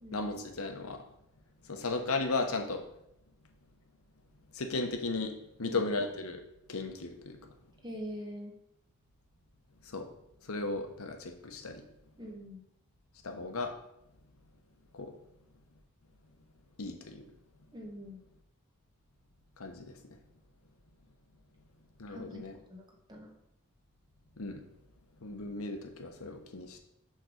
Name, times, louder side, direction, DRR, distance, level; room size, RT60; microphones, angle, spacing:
voice 1, 0.1-1.0 1.6-2.9 4.5-6.4 6.7-7.4 9.8-10.1 10.4-11.8 13.2-13.7 14.9-15.2 16.8-17.2 19.6-20.2 22.0-22.5 24.4-24.7 25.2-26.8, left 3 dB, 80° left, 5 dB, 1.0 m, -36 dB
voice 2, 7.8-8.5 12.2-12.6 17.7-18.2 22.1-22.8 23.1-23.3, equal, 20° right, 1 dB, 1.0 m, -43 dB
6.5 x 3.8 x 6.3 m, 0.79 s
head